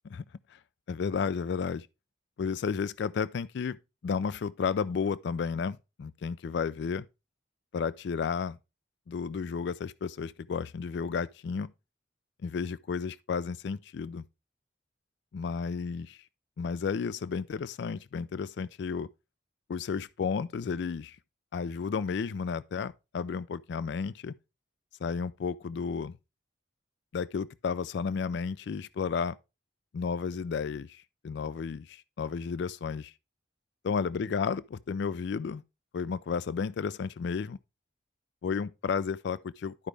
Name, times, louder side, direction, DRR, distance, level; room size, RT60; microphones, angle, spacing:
voice 1, 0.9-1.9 2.4-3.8 4.0-7.1 7.7-8.6 9.1-11.7 12.4-14.2 15.3-16.2 16.6-19.1 19.7-21.2 21.5-24.3 25.0-26.2 27.1-29.4 29.9-33.1 33.8-35.6 35.9-37.6 38.4-39.9, left 5 dB, 65° left, 0.4 m, -32 dB
12.0 x 5.1 x 3.3 m
head